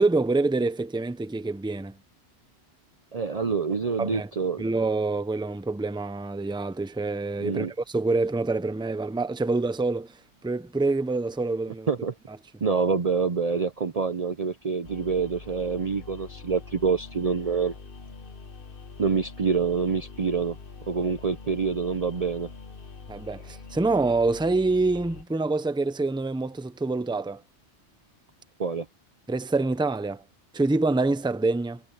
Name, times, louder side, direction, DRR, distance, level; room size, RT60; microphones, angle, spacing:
voice 1, 0.0-2.0 4.0-4.3 4.6-10.1 10.4-11.9 23.1-27.4 29.3-30.2 30.5-31.8, right 3 dB, 5° right, 0.7 m, -26 dB
voice 2, 3.1-4.6 7.4-7.7 11.9-12.1 12.6-17.7 19.0-20.6 20.9-22.5 28.6-28.9, right 5 dB, 40° right, 0.6 m, -26 dB
sound 1, 14.8-25.2, left 4 dB, 50° left, 1.4 m, -44 dB
omnidirectional pair, 1.2 m